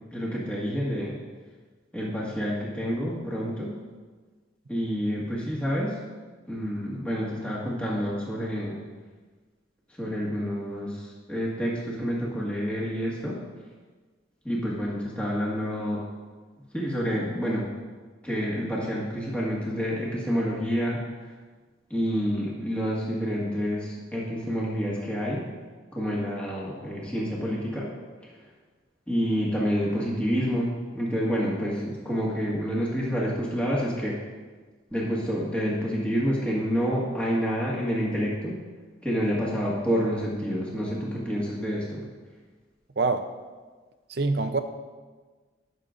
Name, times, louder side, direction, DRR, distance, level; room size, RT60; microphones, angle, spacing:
voice 1, 0.1-1.2 1.9-3.7 4.7-6.0 6.5-8.8 10.0-13.4 14.4-16.0 16.7-17.7 18.2-21.0 21.9-25.4 25.9-27.9 29.1-34.2 34.9-38.6 39.0-42.0, equal, 5° left, -6 dB, 1.7 m, -28 dB
voice 2, 43.0-43.3 44.1-44.6, right 3 dB, 55° right, 8 dB, 0.6 m, -25 dB
19.0 x 6.6 x 2.5 m, 1.4 s
head